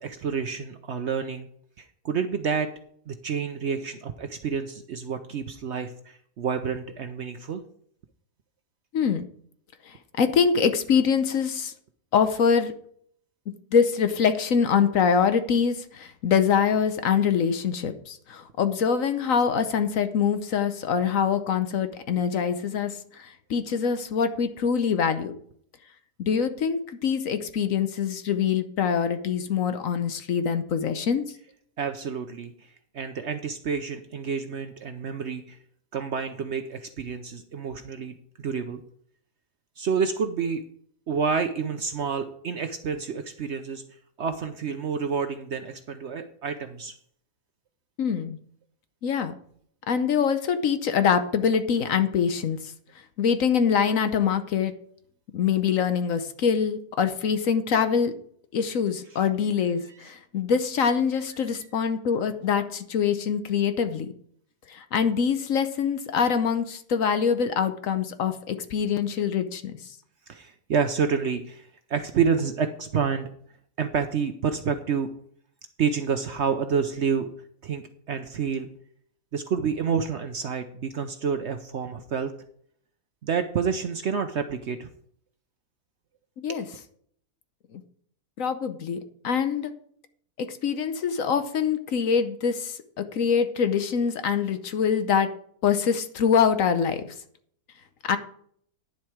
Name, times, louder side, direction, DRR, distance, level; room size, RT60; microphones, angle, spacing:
voice 1, 0.0-1.5 1.8-2.7 3.1-7.6 31.8-32.7 32.9-35.6 35.9-38.8 39.8-40.6 41.1-43.8 44.2-46.9 70.3-73.3 73.8-75.1 75.8-77.3 77.6-78.7 79.3-82.3 83.2-84.9 86.5-86.6, right 6 dB, 60° right, 8 dB, 0.8 m, -29 dB
voice 2, 8.9-9.2 9.9-11.7 12.1-12.7 13.7-25.3 26.2-31.2 48.0-48.4 49.0-49.3 49.9-52.7 53.2-54.7 55.3-58.1 58.5-64.1 64.7-69.9 86.4-86.6 87.7-87.8 88.4-89.7 90.4-95.3 95.6-97.0 98.1-98.2, left 7 dB, 65° left, 10 dB, 1.1 m, -24 dB
10.5 x 7.5 x 4.9 m, 0.63 s
omnidirectional pair, 1.7 m